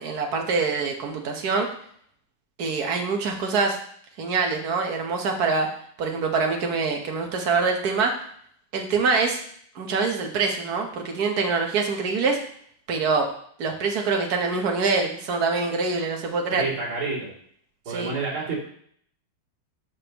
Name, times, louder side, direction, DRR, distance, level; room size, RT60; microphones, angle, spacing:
voice 1, 0.0-1.7 2.6-3.8 4.2-5.7 6.0-8.2 8.7-9.4 9.7-12.4 12.9-13.3 13.6-16.7 17.9-18.1, right 4 dB, 50° right, 2 dB, 1.7 m, -24 dB
voice 2, 16.5-17.3 17.9-18.6, right 4 dB, 80° right, -7 dB, 3.8 m, -29 dB
13.5 x 5.4 x 3.0 m, 0.62 s
omnidirectional pair, 2.3 m